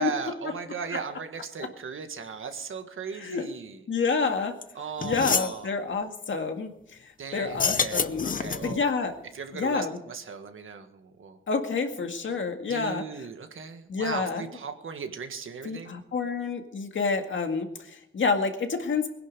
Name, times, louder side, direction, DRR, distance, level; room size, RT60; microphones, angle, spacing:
voice 1, 0.0-3.8 4.7-5.8 7.2-8.8 9.3-11.4 12.7-15.9, right 5 dB, 90° right, 7 dB, 1.7 m, -37 dB
voice 2, 3.9-4.5 5.0-6.7 7.3-8.3 8.6-9.1 9.5-10.0 11.5-13.0 13.9-14.5 15.6-19.1, left 4 dB, 70° left, 5 dB, 2.0 m, -28 dB
sound 1, 4.6-4.7 5.0-5.6 7.5-8.8, left 6 dB, 40° left, 0.7 m, -27 dB
21.0 x 11.0 x 5.3 m, 0.79 s
wide cardioid pair, 140°, 20 cm